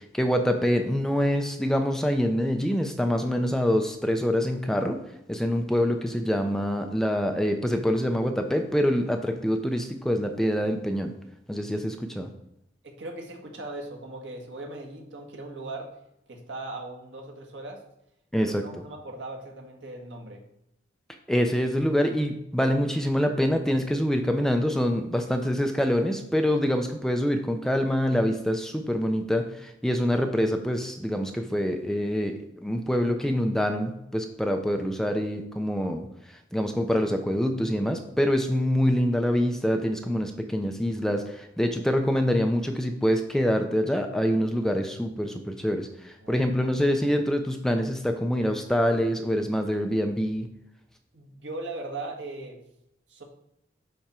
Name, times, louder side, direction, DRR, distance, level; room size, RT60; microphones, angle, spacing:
voice 1, 0.1-5.0 5.3-11.1 11.5-12.3 18.3-18.6 21.3-36.1 36.5-50.5, equal, 5° left, 5 dB, 0.5 m, -25 dB
voice 2, 12.8-15.9 16.3-17.8 18.4-20.4 46.2-46.5 51.1-52.6 53.1-53.2, right 2 dB, 85° right, 2 dB, 1.5 m, -39 dB
10.0 x 3.5 x 4.3 m, 0.79 s
head